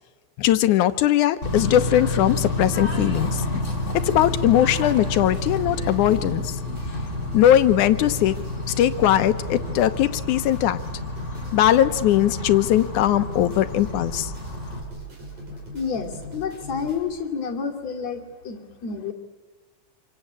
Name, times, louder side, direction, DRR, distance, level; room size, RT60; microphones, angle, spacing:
voice 1, 0.4-3.4 4.0-6.6 7.3-8.3 8.7-10.8 11.5-14.3, left 12 dB, 85° left, 12 dB, 2.4 m, -20 dB
Bird / Train, 1.4-14.8, left 2 dB, 25° left, 4.5 m, -29 dB
sound 1, 5.0-17.0, right 1 dB, 85° right, 7.8 m, -40 dB
voice 2, 15.2-19.1, left 6 dB, 65° left, 0 dB, 3.8 m, -30 dB
26.5 x 24.0 x 8.8 m, 1.4 s
omnidirectional pair, 3.4 m